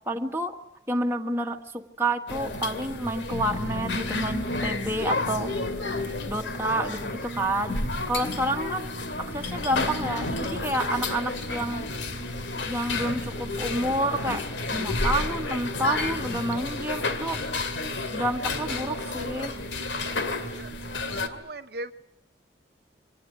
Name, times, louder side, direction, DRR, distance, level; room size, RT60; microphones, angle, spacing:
voice 1, 0.1-0.5 0.9-5.5 6.2-8.9 9.2-11.8 12.7-14.4 14.7-17.4 18.1-19.6, right 1 dB, 15° right, 3 dB, 1.6 m, -29 dB
sound 1, 2.3-21.3, left 2 dB, 90° left, 2.3 m, -31 dB
sound 2, 3.3-16.7, left 1 dB, 70° left, 0.9 m, -39 dB
voice 2, 21.2-21.9, right 1 dB, 60° right, 9 dB, 0.9 m, -38 dB
25.5 x 19.0 x 9.6 m, 0.85 s
head